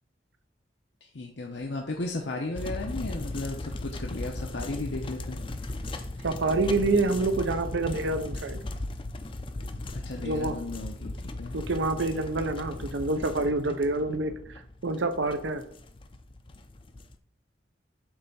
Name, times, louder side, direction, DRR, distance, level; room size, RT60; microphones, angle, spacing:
voice 1, 1.0-5.4 9.9-11.6, left 2 dB, 70° left, 1 dB, 0.8 m, -35 dB
sound 1, 2.5-17.2, left 2 dB, 25° left, 0.5 m, -37 dB
voice 2, 6.2-8.6 10.2-10.6 11.5-14.3 14.8-15.6, right 2 dB, 80° right, 9 dB, 0.7 m, -27 dB
7.9 x 3.4 x 5.5 m, 0.63 s
head